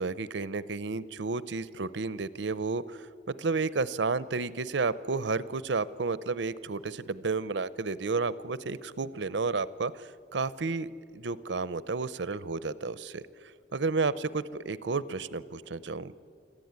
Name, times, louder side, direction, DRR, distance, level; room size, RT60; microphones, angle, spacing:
voice 1, 0.0-2.8 3.3-9.9 10.3-13.2 13.7-16.2, right 4 dB, 80° right, 17 dB, 0.7 m, -31 dB
26.0 x 14.0 x 9.6 m, 2.3 s
head